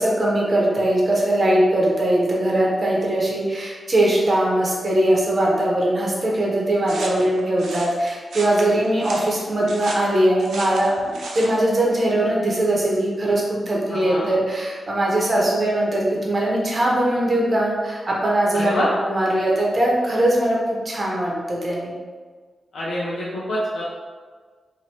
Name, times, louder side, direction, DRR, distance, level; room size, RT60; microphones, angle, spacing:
voice 1, 0.0-20.6 20.8-21.9, right 1 dB, 35° right, -3 dB, 1.0 m, -21 dB
sound 1, 6.9-11.6, right 2 dB, 90° right, 0.6 m, -35 dB
voice 2, 13.9-14.3 18.5-18.9 22.7-23.8, left 1 dB, 80° left, -7 dB, 0.7 m, -26 dB
2.9 x 2.7 x 4.4 m, 1.5 s
wide cardioid pair, 100°, 0 cm